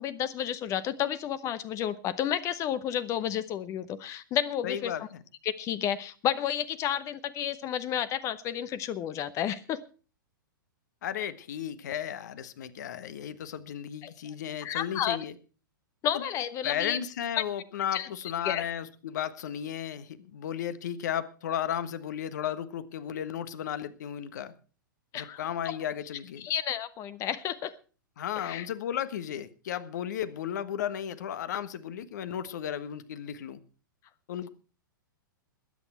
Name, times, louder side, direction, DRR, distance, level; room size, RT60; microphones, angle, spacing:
voice 1, 0.0-4.9 5.4-9.8 14.0-14.1 14.6-15.2 16.0-17.0 17.9-18.1 18.4-18.6 25.1-25.4 25.6-25.8 26.4-27.8 28.4-28.7, left 10 dB, 25° left, 0.8 m, -31 dB
voice 2, 4.6-5.2 11.0-15.3 16.1-16.2 16.6-24.5 25.1-26.5 28.2-33.6 34.3-34.5, left 9 dB, 55° left, 1.4 m, -34 dB
21.0 x 9.0 x 4.5 m
figure-of-eight pair, 105°, 11 cm